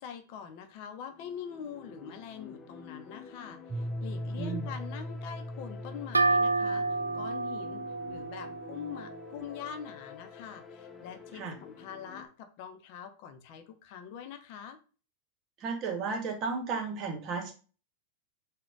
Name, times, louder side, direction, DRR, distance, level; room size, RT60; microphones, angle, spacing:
voice 1, 0.0-14.8, left 8 dB, 50° left, 7 dB, 0.7 m, -44 dB
sound 1, 1.1-12.3, left 5 dB, 20° left, 0.8 m, -50 dB
Piano, 3.7-9.3, equal, 25° right, 0.4 m, -40 dB
voice 2, 4.3-4.7 11.4-11.5 15.6-17.5, right 4 dB, 40° right, 2 dB, 1.5 m, -34 dB
sound 2, 6.1-9.7, right 3 dB, 90° right, 0.4 m, -30 dB
3.9 x 2.4 x 4.6 m, 0.36 s
figure-of-eight pair, 95°, 0 cm